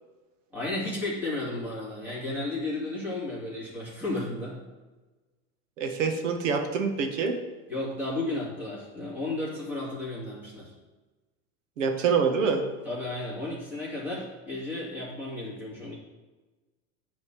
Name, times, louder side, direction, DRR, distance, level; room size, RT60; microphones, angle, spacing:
voice 1, 0.5-4.6 7.7-10.7 12.8-16.0, left 2 dB, 5° right, -7 dB, 2.7 m, -33 dB
voice 2, 5.8-7.3 11.8-12.6, right 5 dB, 80° right, 5 dB, 1.7 m, -25 dB
10.0 x 4.3 x 7.5 m, 1.2 s
supercardioid pair, 150°, 37 cm